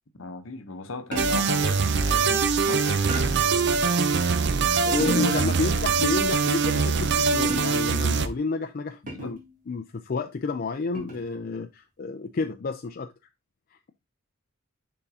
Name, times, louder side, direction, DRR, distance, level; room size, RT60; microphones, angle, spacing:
voice 1, 0.2-3.5 5.0-5.6 6.1-6.3 9.0-9.4, left 2 dB, 65° left, 0.9 m, -36 dB
sound 1, 1.1-1.6 3.1-3.6 5.0-5.5 7.5-8.0 9.1-9.5 10.9-11.3, right 1 dB, 40° right, 1.6 m, -36 dB
sound 2, 1.2-8.3, right 5 dB, 55° right, 0.5 m, -23 dB
voice 2, 4.8-9.4 9.7-13.1 13.7-13.8, left 4 dB, 45° left, 0.4 m, -30 dB
10.5 x 3.7 x 2.7 m
head